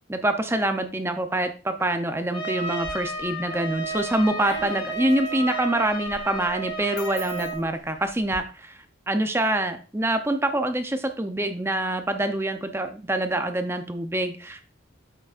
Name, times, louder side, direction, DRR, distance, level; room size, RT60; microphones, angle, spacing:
voice 1, 0.1-14.6, right 1 dB, 10° right, 7 dB, 0.6 m, -26 dB
Trumpet, 2.3-7.6, right 2 dB, 25° left, 1.8 m, -32 dB
sound 1, 2.8-3.3 3.7-8.4, left 1 dB, 55° left, 2.7 m, -42 dB
8.6 x 6.6 x 2.5 m, 0.36 s
head